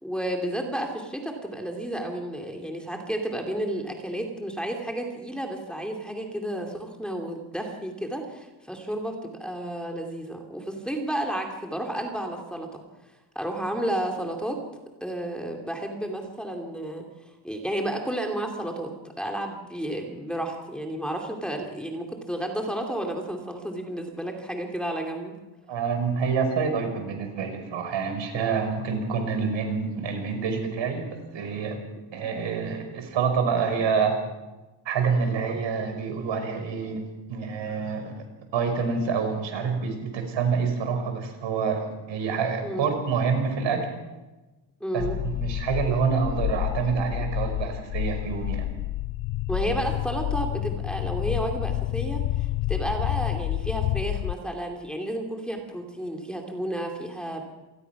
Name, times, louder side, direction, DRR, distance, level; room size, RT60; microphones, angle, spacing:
voice 1, 0.0-12.8 13.3-14.6 15.0-17.1 17.4-18.9 19.2-25.3 42.6-42.9 44.8-45.2 49.5-57.4, right 1 dB, ahead, 2 dB, 2.5 m, -32 dB
voice 2, 25.7-31.0 31.3-31.8 32.1-34.2 34.9-38.2 38.5-43.8 44.9-48.7, right 5 dB, 90° right, 6 dB, 5.3 m, -27 dB
sound 1, 45.0-54.3, left 15 dB, 80° left, 0.8 m, -29 dB
27.5 x 19.5 x 5.9 m, 1.1 s
wide cardioid pair, 165°, 43 cm